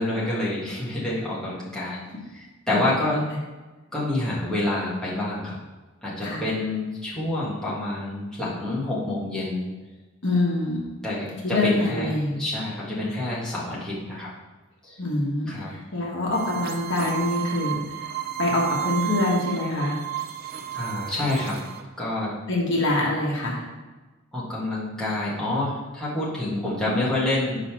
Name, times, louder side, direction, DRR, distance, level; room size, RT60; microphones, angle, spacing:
voice 1, 0.0-2.0 2.3-3.2 3.9-5.5 6.0-9.7 11.0-14.3 14.8-15.0 15.5-15.7 20.7-21.6 22.0-22.3 24.3-27.6, left 1 dB, 5° left, -8 dB, 1.6 m, -27 dB
voice 2, 2.7-3.2 6.2-6.5 10.2-10.8 11.4-12.5 15.0-18.0 18.4-20.0 22.5-23.6, left 2 dB, 55° left, -3 dB, 1.3 m, -25 dB
sound 1, 16.3-21.8, right 12 dB, 45° right, 0.4 m, -32 dB
5.1 x 4.0 x 5.9 m, 1.2 s
head